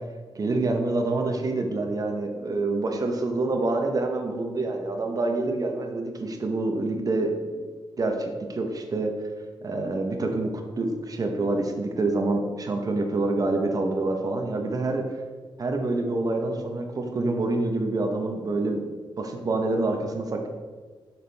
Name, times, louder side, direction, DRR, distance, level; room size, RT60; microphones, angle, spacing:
voice 1, 0.3-7.3 8.0-9.1 9.6-10.5 10.8-15.0 15.6-18.8 19.2-20.5, right 2 dB, 40° right, 3 dB, 0.9 m, -26 dB
6.8 x 5.9 x 3.5 m, 1.5 s
cardioid pair, 95°, 9 cm